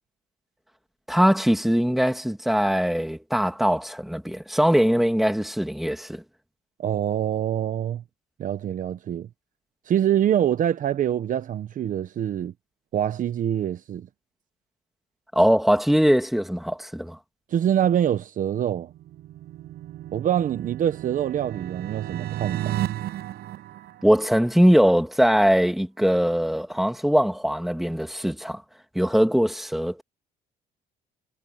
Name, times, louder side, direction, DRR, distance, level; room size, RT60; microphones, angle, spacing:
voice 1, 1.1-6.2 15.3-17.2 24.0-28.6 28.9-30.0, equal, ahead, 2.8 m, -21 dB
voice 2, 6.8-8.0 8.4-9.3 9.9-12.5 12.9-14.1 17.5-18.9 20.1-22.8, right 10 dB, 50° right, 1.1 m, -25 dB
sound 1, 18.8-24.6, right 13 dB, 70° right, 7.6 m, -34 dB
cardioid pair, 110°, 17 cm